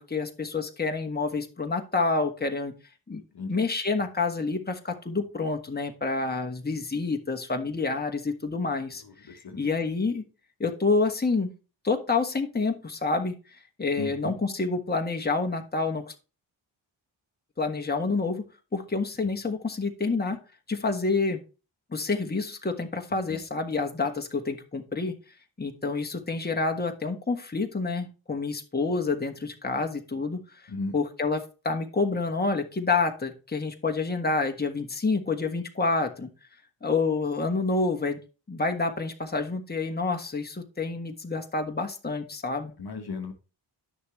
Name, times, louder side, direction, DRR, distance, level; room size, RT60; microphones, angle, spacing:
voice 1, 0.0-2.7 3.1-3.2 3.5-9.0 9.3-10.3 10.6-11.5 11.8-13.3 13.8-16.1 17.6-18.5 18.7-20.4 20.7-21.4 21.9-25.1 25.6-30.4 30.9-36.3 36.8-38.2 38.5-42.7, left 3 dB, 20° left, 4 dB, 1.5 m, -28 dB
voice 2, 9.0-9.7 14.0-14.4 19.2-19.3 23.3-23.4 30.7-30.9 42.8-43.3, left 4 dB, 50° left, 5 dB, 1.4 m, -36 dB
9.8 x 6.5 x 3.2 m, 0.32 s
supercardioid pair, 40°, 49 cm